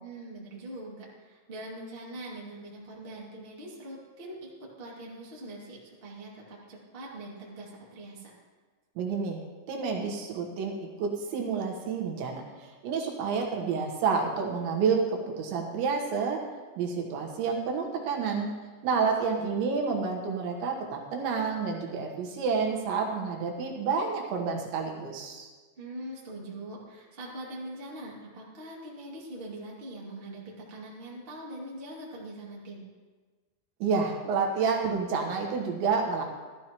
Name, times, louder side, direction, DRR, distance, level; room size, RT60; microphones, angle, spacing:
voice 1, 0.0-8.3 18.9-19.7 25.8-32.8, right 1 dB, 35° right, -5 dB, 0.9 m, -43 dB
voice 2, 9.0-9.4 9.7-10.7 11.0-16.4 16.8-18.5 18.8-25.5 33.8-36.2, right 5 dB, 75° right, 0 dB, 3.4 m, -29 dB
14.0 x 13.5 x 3.0 m, 1.4 s
omnidirectional pair, 5.5 m